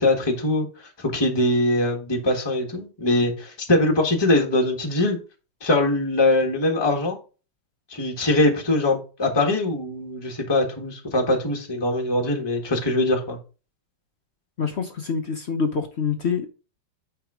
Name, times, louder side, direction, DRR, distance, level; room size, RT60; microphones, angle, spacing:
voice 1, 0.0-5.2 5.6-7.2 7.9-13.4, left 2 dB, 15° left, 1.4 m, -22 dB
voice 2, 14.6-16.5, left 5 dB, 60° left, 0.7 m, -26 dB
9.1 x 3.5 x 4.9 m
omnidirectional pair, 2.1 m